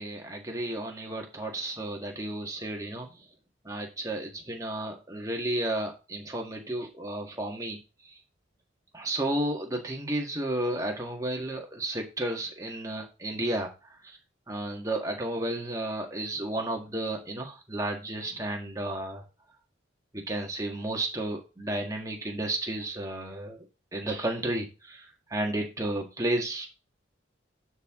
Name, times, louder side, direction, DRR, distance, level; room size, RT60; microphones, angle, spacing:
voice 1, 0.0-3.1 3.7-7.8 8.9-13.7 14.5-19.2 20.1-23.6 23.9-25.0 25.3-26.7, right 1 dB, 20° right, 1 dB, 1.7 m, -32 dB
11.5 x 4.6 x 3.7 m, 0.30 s
head